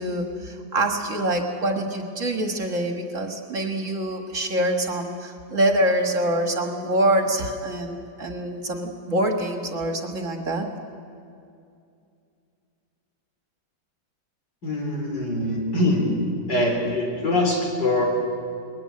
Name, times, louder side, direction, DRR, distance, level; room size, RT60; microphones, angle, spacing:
voice 1, 0.0-10.7, right 1 dB, 45° right, 3 dB, 1.9 m, -25 dB
voice 2, 14.6-16.1 16.5-18.0, left 1 dB, 75° left, 0 dB, 4.6 m, -23 dB
20.5 x 14.5 x 9.6 m, 2.5 s
omnidirectional pair, 1.9 m